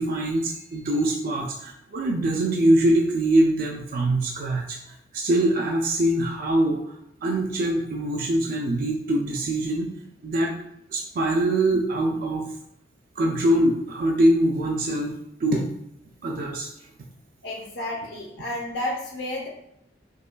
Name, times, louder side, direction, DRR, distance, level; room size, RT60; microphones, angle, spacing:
voice 1, 0.0-6.9 7.2-9.9 10.2-10.5 10.9-12.4 13.2-15.1 15.4-15.7 16.2-16.7, right 1 dB, 50° right, 0 dB, 0.3 m, -23 dB
voice 2, 17.4-19.5, left 1 dB, 70° left, -2 dB, 0.6 m, -31 dB
5.2 x 2.3 x 2.2 m, 0.77 s
head